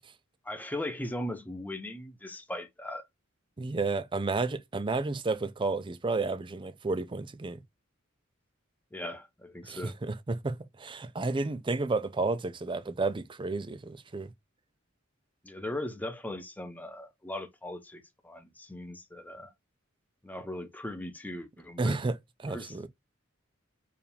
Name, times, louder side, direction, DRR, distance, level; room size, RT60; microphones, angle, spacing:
voice 1, 0.4-3.0 8.9-9.9 15.4-19.5 20.2-22.0 22.5-22.9, left 1 dB, 10° left, 0.7 m, -39 dB
voice 2, 3.6-7.6 9.6-14.3 21.8-22.9, right 3 dB, 25° right, 0.4 m, -31 dB
4.7 x 2.5 x 3.3 m
head